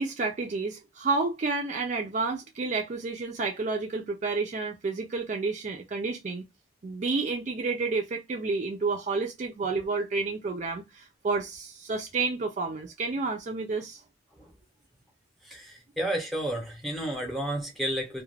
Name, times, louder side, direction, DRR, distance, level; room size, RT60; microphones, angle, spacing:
voice 1, 0.0-6.4 6.8-14.0, right 3 dB, 35° right, 0.3 m, -30 dB
voice 2, 15.5-18.2, right 1 dB, ahead, 0.7 m, -31 dB
2.3 x 2.1 x 3.2 m
head